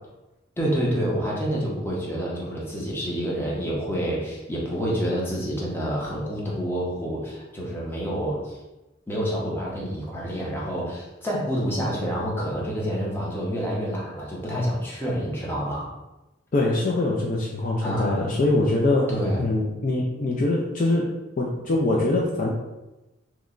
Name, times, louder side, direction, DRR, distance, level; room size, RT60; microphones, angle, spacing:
voice 1, 0.6-8.6 9.1-15.9 17.8-18.2 19.1-19.4, equal, 10° left, -4 dB, 0.7 m, -28 dB
voice 2, 16.5-21.1 21.4-22.5, left 2 dB, 40° left, -2 dB, 0.4 m, -23 dB
3.0 x 2.2 x 3.7 m, 1.0 s
head